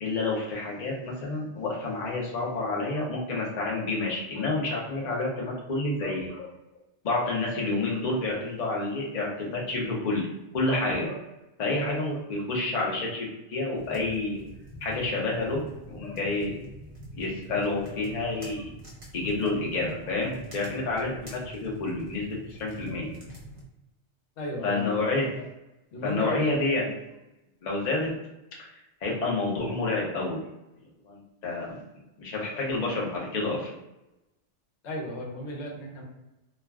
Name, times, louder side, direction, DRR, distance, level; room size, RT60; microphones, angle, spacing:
voice 1, 0.0-6.5 7.0-10.3 10.5-11.2 11.6-14.4 14.8-15.6 15.9-16.5 17.1-18.6 19.1-23.2 24.6-25.5 26.0-27.0 27.6-28.1 28.6-28.7 29.0-30.4 31.0-31.8 32.2-33.7, left 2 dB, 45° left, -3 dB, 0.6 m, -29 dB
sound 1, 13.8-23.6, right 1 dB, 35° right, 0.7 m, -44 dB
voice 2, 24.4-25.0 25.9-26.5 34.8-36.0, equal, 70° left, -2 dB, 1.0 m, -34 dB
2.4 x 2.2 x 3.4 m, 0.97 s
omnidirectional pair, 1.2 m